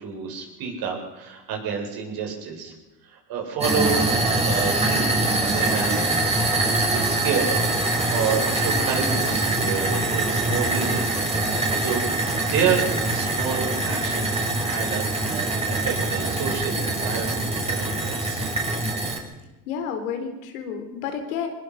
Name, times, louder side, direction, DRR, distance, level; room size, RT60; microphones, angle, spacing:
voice 1, 0.0-2.7 3.0-4.0 4.4-5.2 5.5-6.2 6.8-11.0 11.3-12.0 12.4-18.5, right 6 dB, 60° right, 1 dB, 7.9 m, -29 dB
sound 1, 3.6-19.2, right 2 dB, 15° right, 6.2 m, -24 dB
voice 2, 19.7-21.5, left 7 dB, 90° left, 5 dB, 4.2 m, -30 dB
23.0 x 20.5 x 5.9 m, 1.1 s
supercardioid pair, 100°, 40 cm